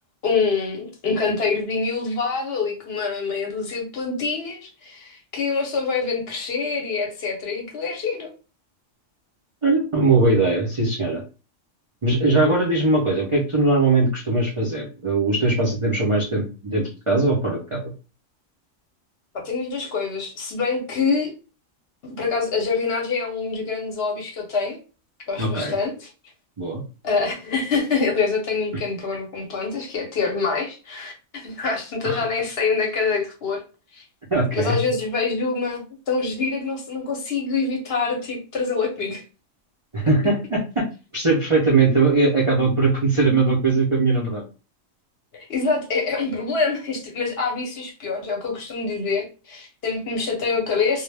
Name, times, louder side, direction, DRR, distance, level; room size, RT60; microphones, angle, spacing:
voice 1, 0.2-8.3 19.3-21.3 22.1-24.8 25.3-26.1 27.0-31.1 31.4-33.6 33.9-34.0 34.5-39.2 45.3-51.0, left 4 dB, 55° left, 1 dB, 0.8 m, -25 dB
voice 2, 9.6-11.2 12.0-17.8 25.4-25.8 26.6-26.8 32.0-32.2 34.3-34.8 39.9-40.6 41.1-44.4, right 3 dB, 50° right, -3 dB, 0.3 m, -20 dB
2.2 x 2.0 x 3.2 m, 0.34 s
omnidirectional pair, 1.4 m